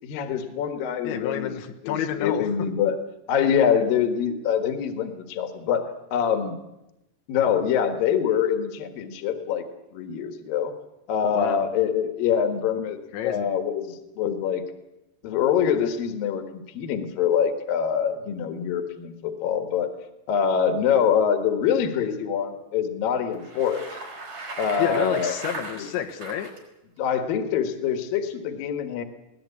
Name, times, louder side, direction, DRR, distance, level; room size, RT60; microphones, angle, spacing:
voice 1, 0.0-1.5 1.8-3.0 3.3-5.8 6.1-6.6 7.3-9.7 9.9-10.7 11.1-14.6 15.2-19.9 20.3-23.9 24.6-25.3 25.8-25.9 27.0-29.0, left 8 dB, 60° left, 7 dB, 3.1 m, -25 dB
voice 2, 1.0-2.5 11.3-11.7 13.1-13.5 24.8-26.5, left 9 dB, 85° left, 4 dB, 3.7 m, -29 dB
Bicycle, 23.3-26.6, right 3 dB, 45° right, 5.0 m, -38 dB
21.5 x 18.0 x 8.5 m, 0.91 s
omnidirectional pair, 5.1 m